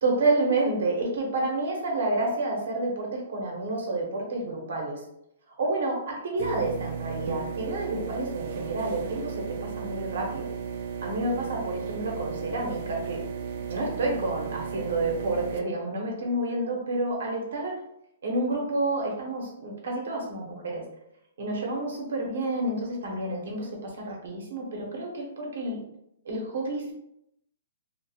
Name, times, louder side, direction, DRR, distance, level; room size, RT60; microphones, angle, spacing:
voice 1, 0.0-5.0 5.6-10.5 11.0-13.2 13.7-17.8 18.2-20.9 21.4-25.8 26.2-26.9, right 2 dB, 75° right, 0 dB, 0.9 m, -29 dB
sound 1, 6.4-15.6, right 6 dB, 50° right, 0.4 m, -35 dB
2.3 x 2.3 x 2.8 m, 0.79 s
hypercardioid pair, 145°, 0 cm